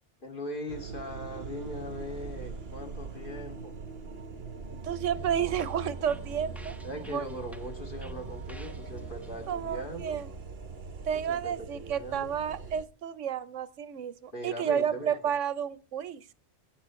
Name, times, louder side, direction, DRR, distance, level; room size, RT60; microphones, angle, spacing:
voice 1, 0.2-3.7 6.8-10.3 11.1-12.3 14.3-15.1, equal, 45° left, 3 dB, 2.5 m, -40 dB
sound 1, 0.7-12.9, right 4 dB, 60° right, 1.2 m, -41 dB
voice 2, 4.8-7.3 9.5-10.3 11.0-16.2, right 8 dB, 85° right, 15 dB, 1.1 m, -31 dB
sound 2, 5.1-10.7, equal, ahead, 0.6 m, -52 dB
21.5 x 9.1 x 3.1 m, 0.31 s
omnidirectional pair, 1.2 m